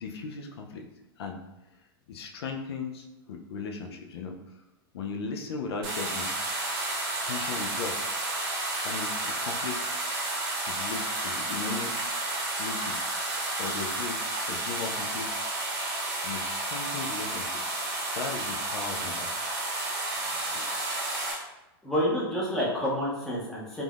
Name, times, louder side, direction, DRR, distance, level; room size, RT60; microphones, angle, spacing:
voice 1, 0.0-0.8 1.2-1.4 2.1-4.4 4.9-6.3 7.2-7.9 8.8-9.8 10.7-11.9 12.6-13.0 13.6-14.2 14.5-15.3 16.2-17.6 18.1-19.3 20.4-20.7, left 5 dB, 80° left, 3 dB, 0.4 m, -37 dB
sound 1, 5.8-21.3, right 2 dB, 30° right, 0.8 m, -31 dB
voice 2, 21.8-23.8, equal, 5° left, -7 dB, 0.6 m, -28 dB
3.5 x 2.0 x 2.3 m, 0.96 s
supercardioid pair, 155°, 13 cm